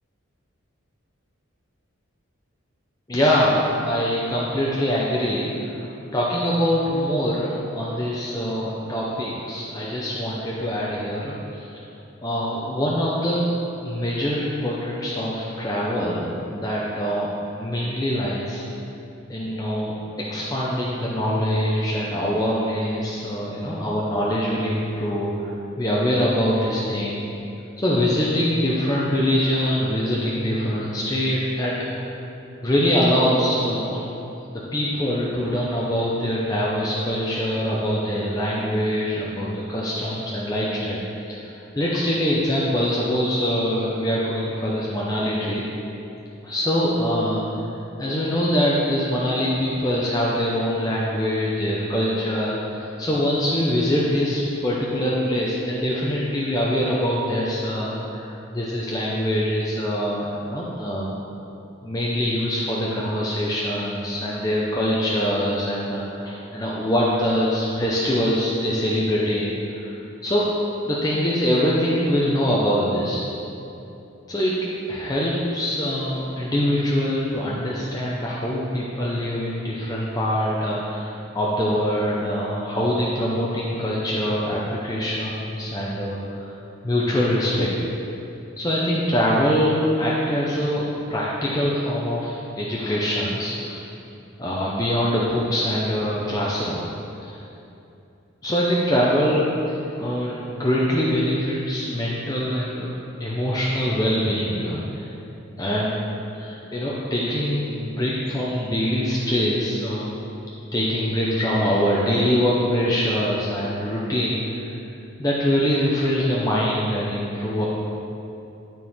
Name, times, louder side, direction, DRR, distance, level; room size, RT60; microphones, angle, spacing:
voice 1, 3.1-5.8 6.1-11.8 12.2-13.5 13.8-17.3 17.5-18.6 19.3-20.0 20.3-25.5 25.8-27.3 27.8-32.1 32.6-34.1 34.5-41.4 41.7-45.6 46.4-47.4 48.0-61.2 61.8-70.0 70.2-70.5 70.9-73.2 74.3-74.6 74.9-86.6 86.8-87.7 88.6-93.9 94.4-96.8 97.2-97.4 98.4-102.9 103.2-105.1 105.6-105.9 106.3-110.1 110.7-114.7 115.2-117.7, equal, 20° left, -6 dB, 0.7 m, -24 dB
12.0 x 4.5 x 3.6 m, 2.8 s
head